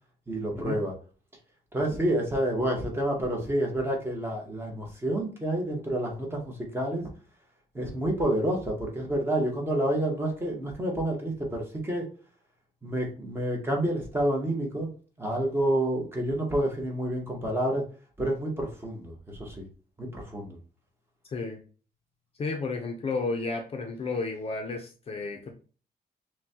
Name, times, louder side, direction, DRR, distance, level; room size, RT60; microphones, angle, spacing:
voice 1, 0.3-1.0 1.7-7.1 7.7-12.1 12.8-14.9 15.2-17.8 18.2-19.6 20.0-20.6, right 1 dB, 15° right, 0 dB, 0.9 m, -29 dB
voice 2, 22.4-25.5, left 3 dB, 35° left, 3 dB, 0.6 m, -32 dB
5.9 x 2.2 x 2.8 m, 0.38 s
wide cardioid pair, 170°, 17 cm